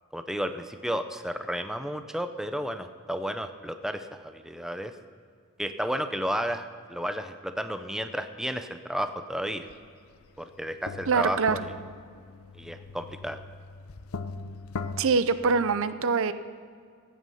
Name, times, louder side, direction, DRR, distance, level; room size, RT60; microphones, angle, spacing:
voice 1, 0.1-4.9 5.6-9.7 10.4-11.7 12.5-13.4, equal, ahead, 8 dB, 0.5 m, -32 dB
sound 1, 9.7-9.8 10.2-15.0, left 4 dB, 75° left, 0.6 m, -39 dB
voice 2, 11.1-11.6 15.0-16.3, right 5 dB, 65° right, 13 dB, 0.6 m, -24 dB
15.0 x 9.3 x 5.7 m, 2.1 s
head